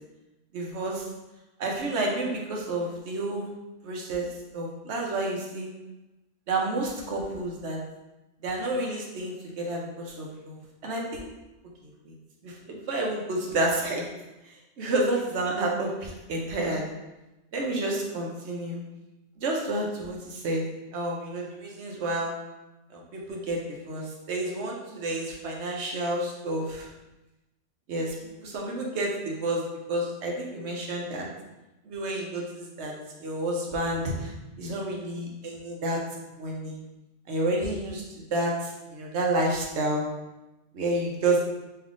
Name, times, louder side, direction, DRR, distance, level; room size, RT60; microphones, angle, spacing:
voice 1, 0.5-1.0 1.6-3.5 3.8-4.3 4.5-5.7 6.5-7.8 8.4-11.3 11.8-12.1 12.4-14.1 14.8-16.9 17.5-18.8 19.4-20.6 20.9-22.3 22.9-26.9 27.9-28.1 28.4-31.3 31.8-32.9 33.2-34.3 34.6-36.0 36.3-36.8 37.3-40.0 40.7-41.4, right 2 dB, 70° right, -1 dB, 1.0 m, -30 dB
3.3 x 2.7 x 3.7 m, 1.0 s
omnidirectional pair, 1.2 m